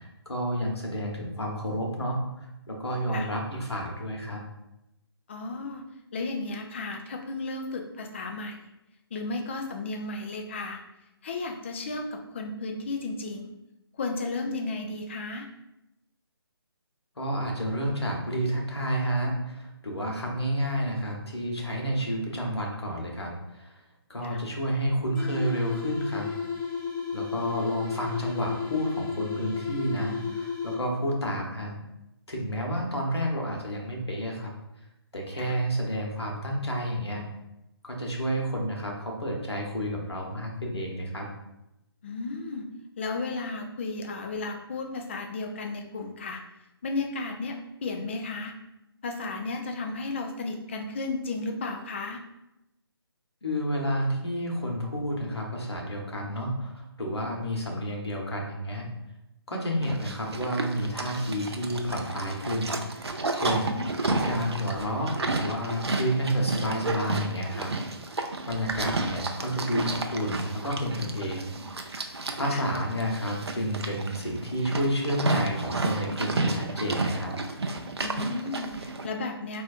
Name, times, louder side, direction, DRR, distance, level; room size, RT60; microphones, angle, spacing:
voice 1, 0.0-2.2 2.7-4.4 17.2-23.7 24.1-26.3 27.1-31.8 32.3-34.5 35.1-37.2 37.8-41.3 53.4-58.9 59.5-63.7 64.1-67.7 68.1-71.5 72.4-77.3, equal, 80° left, 0 dB, 0.9 m, -30 dB
voice 2, 5.3-5.8 6.1-8.6 9.1-10.8 11.2-13.5 14.0-15.5 24.2-24.4 35.4-35.5 42.0-42.7 43.0-46.4 46.8-47.6 47.8-48.5 49.0-52.2 63.5-64.1 72.4-72.6 78.0-79.6, left 3 dB, 30° left, 3 dB, 0.3 m, -34 dB
sound 1, 25.1-31.1, left 5 dB, 50° left, 1.1 m, -33 dB
Livestock farm animals working animals, 59.8-79.1, right 3 dB, 80° right, 0.4 m, -32 dB
4.0 x 2.5 x 2.4 m, 0.89 s
figure-of-eight pair, 145°, 13 cm